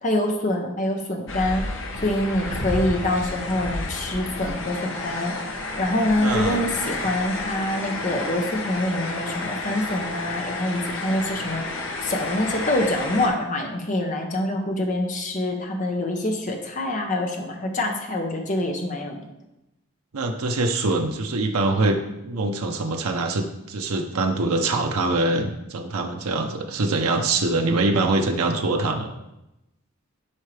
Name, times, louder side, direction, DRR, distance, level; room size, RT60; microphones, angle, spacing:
voice 1, 0.0-1.6 2.0-5.3 5.8-11.6 12.0-19.2, left 1 dB, 35° left, 3 dB, 0.9 m, -25 dB
sound 1, 1.3-13.3, left 2 dB, 60° left, 1.0 m, -31 dB
voice 2, 6.2-6.7 20.1-22.0 22.2-29.1, right 2 dB, 85° right, 3 dB, 0.7 m, -24 dB
9.9 x 4.5 x 3.3 m, 0.91 s
head